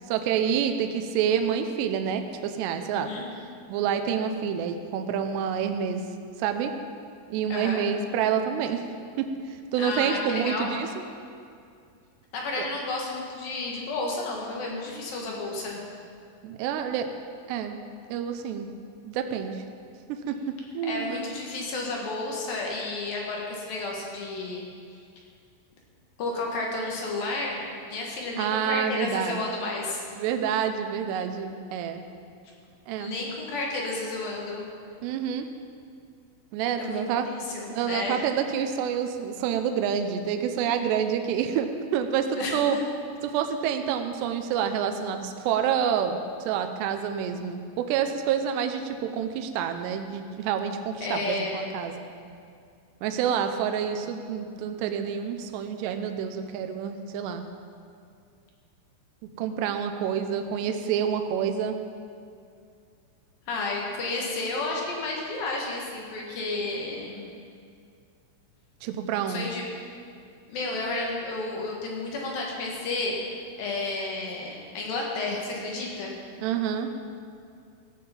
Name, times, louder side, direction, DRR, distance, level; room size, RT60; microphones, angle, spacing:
voice 1, 0.1-3.2 3.7-6.0 6.4-6.7 7.3-8.8 9.2-9.3 9.7-10.9 12.6-12.7 16.4-17.1 17.5-17.8 18.1-18.7 19.1-19.6 20.3-20.4 20.7-21.2 28.4-29.4 30.2-32.0 32.9-33.2 35.0-35.5 36.5-37.3 37.7-42.8 43.2-46.2 46.5-52.1 53.0-57.4 59.4-61.8 68.8-69.5 76.4-76.9, right 8 dB, 85° right, 6 dB, 2.5 m, -28 dB
voice 2, 2.9-3.3 7.5-7.8 9.8-10.7 12.3-15.8 20.8-24.8 26.2-30.0 33.0-34.6 36.8-38.2 42.4-42.6 51.0-51.8 63.5-67.3 69.3-69.7 70.5-73.2 73.6-76.1, left 2 dB, 60° left, -2 dB, 2.8 m, -32 dB
16.0 x 6.7 x 7.1 m, 2.4 s
omnidirectional pair, 5.5 m